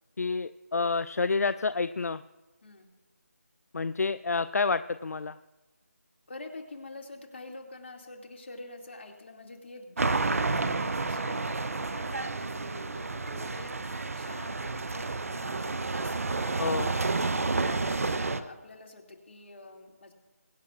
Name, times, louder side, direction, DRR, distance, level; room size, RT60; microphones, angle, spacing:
voice 1, 0.2-2.2 3.7-5.4 16.6-16.9, left 4 dB, 75° left, 13 dB, 0.4 m, -29 dB
voice 2, 6.3-20.1, left 2 dB, 50° left, 1 dB, 2.3 m, -47 dB
sound 1, 10.0-18.4, right 3 dB, 65° right, 0.7 m, -30 dB
23.0 x 9.4 x 2.4 m, 1.1 s
figure-of-eight pair, 165°, 8 cm